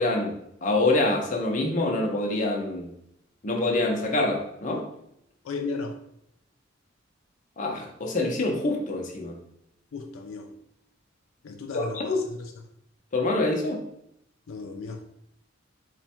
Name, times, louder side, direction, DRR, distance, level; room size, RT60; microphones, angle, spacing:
voice 1, 0.0-2.9 3.4-4.9 7.6-9.4 11.7-12.2 13.1-13.8, left 2 dB, 40° left, 1 dB, 0.6 m, -26 dB
voice 2, 5.4-6.0 9.9-10.5 11.4-12.5 14.5-15.0, left 4 dB, 85° left, 4 dB, 0.4 m, -35 dB
3.5 x 2.2 x 4.3 m, 0.76 s
head